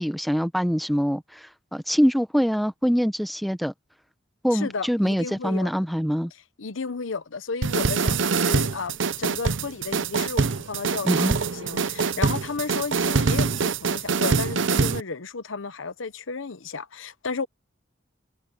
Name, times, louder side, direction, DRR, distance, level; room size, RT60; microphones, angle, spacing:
voice 1, 0.0-3.7 4.4-6.3 11.0-11.4, equal, ahead, 0.9 m, -24 dB
voice 2, 4.5-5.7 6.6-17.5, left 4 dB, 90° left, 0.9 m, -33 dB
sound 1, 7.6-15.0, right 4 dB, 75° right, 0.7 m, -24 dB
head